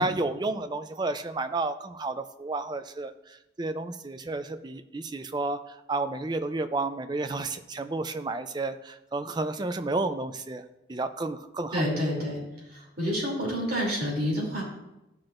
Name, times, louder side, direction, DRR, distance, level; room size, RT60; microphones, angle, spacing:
voice 1, 0.0-3.1 3.6-5.6 5.9-10.6 10.9-11.8, right 2 dB, 20° right, 10 dB, 0.4 m, -31 dB
voice 2, 11.7-12.4 12.7-14.6, equal, 50° right, -4 dB, 2.9 m, -28 dB
14.5 x 5.9 x 2.5 m, 0.94 s
head